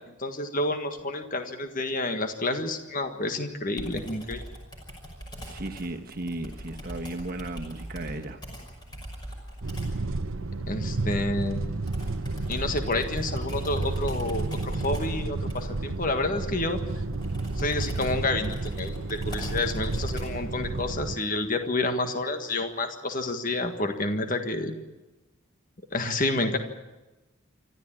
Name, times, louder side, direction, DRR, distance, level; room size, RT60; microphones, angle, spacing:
voice 1, 0.1-4.4 10.7-11.6 12.5-16.8 17.6-24.8 25.9-26.6, left 2 dB, 40° left, 7 dB, 1.6 m, -29 dB
Computer keyboard, 3.8-10.0 11.9-20.5, equal, 20° left, 5.8 m, -40 dB
voice 2, 5.4-8.4, right 2 dB, 45° right, 5 dB, 1.5 m, -35 dB
sound 1, 9.6-21.2, right 2 dB, 70° right, 0.9 m, -31 dB
26.0 x 14.0 x 8.9 m, 1.1 s
head